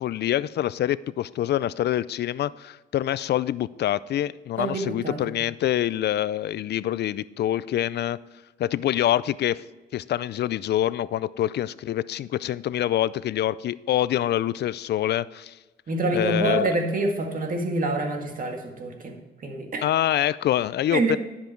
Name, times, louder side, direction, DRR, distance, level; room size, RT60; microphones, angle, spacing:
voice 1, 0.0-8.2 8.6-9.6 9.9-15.6 16.1-16.7 19.8-21.2, left 12 dB, 60° left, 18 dB, 0.4 m, -25 dB
voice 2, 4.6-5.2 15.9-19.9 20.9-21.2, right 2 dB, 45° right, 3 dB, 1.9 m, -26 dB
10.5 x 7.4 x 4.5 m, 1.2 s
cardioid pair, 90°, 20 cm